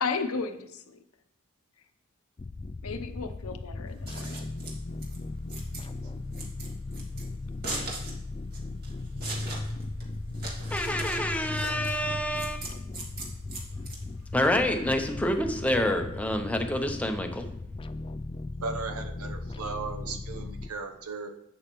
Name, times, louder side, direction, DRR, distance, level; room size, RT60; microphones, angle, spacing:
voice 1, 0.0-1.0 2.8-4.5, left 4 dB, 80° left, 8 dB, 0.8 m, -34 dB
sound 1, 2.4-20.7, left 2 dB, 25° left, 0.3 m, -37 dB
Scissors, 3.9-14.5, right 2 dB, 50° right, 2.0 m, -41 dB
voice 2, 10.7-12.7 14.3-17.5, left 1 dB, 5° left, 5 dB, 0.8 m, -27 dB
voice 3, 18.6-21.3, right 4 dB, 90° right, 5 dB, 0.9 m, -36 dB
11.0 x 8.0 x 3.1 m, 0.79 s
head